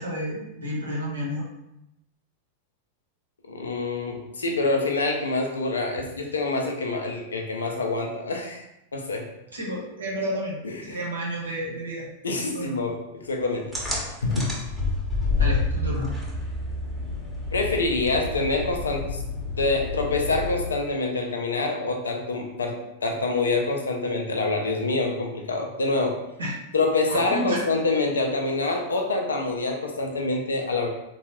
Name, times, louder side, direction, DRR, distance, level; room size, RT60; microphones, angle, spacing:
voice 1, 0.0-1.4 9.5-12.1 12.5-12.8 15.4-16.2 26.4-26.5 27.1-27.6, equal, 75° right, -3 dB, 0.9 m, -31 dB
voice 2, 3.5-8.6 8.9-9.3 10.6-11.0 12.2-13.7 14.2-14.4 17.5-19.2 19.6-26.2 26.7-30.9, left 3 dB, 70° left, 3 dB, 0.5 m, -26 dB
sound 1, 13.7-20.9, left 3 dB, 5° right, 0.9 m, -29 dB
3.5 x 2.3 x 3.0 m, 0.87 s
figure-of-eight pair, 90°, 0 cm